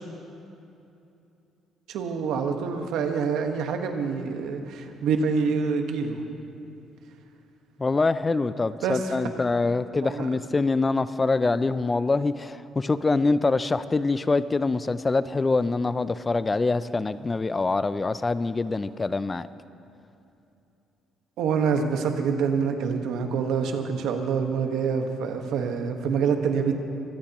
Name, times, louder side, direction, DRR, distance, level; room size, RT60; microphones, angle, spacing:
voice 1, 1.9-6.2 8.8-9.3 10.0-10.3 21.4-26.7, right 6 dB, 75° right, 4 dB, 1.4 m, -26 dB
voice 2, 7.8-19.5, left 3 dB, 15° left, 14 dB, 0.3 m, -25 dB
23.5 x 17.0 x 3.0 m, 2.8 s
cardioid pair, 155°, 0 cm